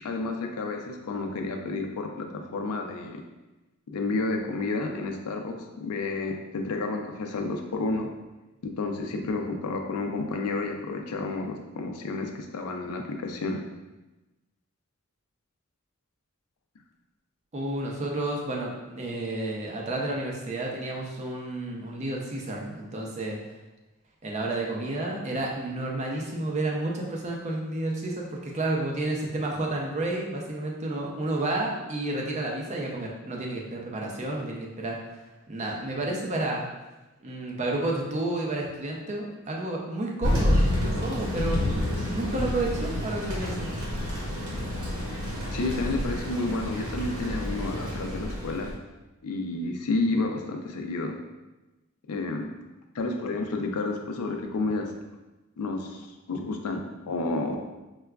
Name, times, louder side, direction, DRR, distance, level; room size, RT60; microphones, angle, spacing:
voice 1, 0.0-3.2 3.9-8.1 8.6-13.6 45.5-48.7 49.2-51.1 52.1-52.5 52.9-54.9 55.6-57.6, left 3 dB, 85° left, 3 dB, 0.4 m, -30 dB
voice 2, 17.5-23.4 24.2-35.2 35.5-36.7 37.2-41.6 42.0-43.7, right 2 dB, 30° right, -1 dB, 0.5 m, -31 dB
Thunder, 40.2-48.7, left 1 dB, 85° right, 1.1 m, -29 dB
4.7 x 2.2 x 2.3 m, 1.1 s
head